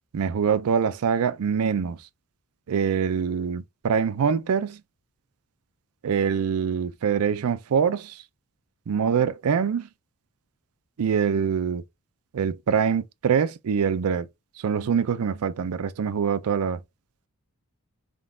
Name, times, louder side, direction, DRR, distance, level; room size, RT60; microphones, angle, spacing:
voice 1, 0.1-2.0 2.7-4.8 6.0-8.2 8.9-9.9 11.0-11.8 12.3-14.3 14.6-16.8, right 7 dB, 80° right, 0.4 m, -24 dB
3.7 x 2.3 x 3.6 m
head